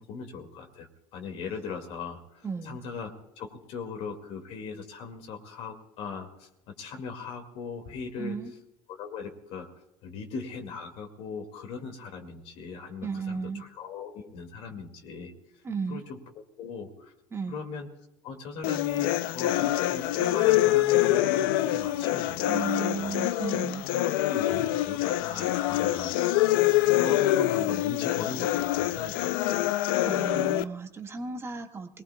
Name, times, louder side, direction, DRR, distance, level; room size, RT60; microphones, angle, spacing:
voice 1, 0.0-8.4 9.0-9.7 10.0-15.3 15.9-16.2 16.6-17.1 17.5-17.9 18.2-23.1 24.0-26.2 26.6-29.6, left 5 dB, 60° left, 3 dB, 2.3 m, -39 dB
voice 2, 2.4-2.8 8.2-8.5 13.0-13.6 15.6-16.0 17.3-17.6 22.5-23.9 30.0-32.0, right 5 dB, 25° right, 4 dB, 1.8 m, -34 dB
sound 1, 18.6-30.6, left 14 dB, 85° left, 0.6 m, -25 dB
23.0 x 19.0 x 2.3 m, 0.86 s
supercardioid pair, 105°, 11 cm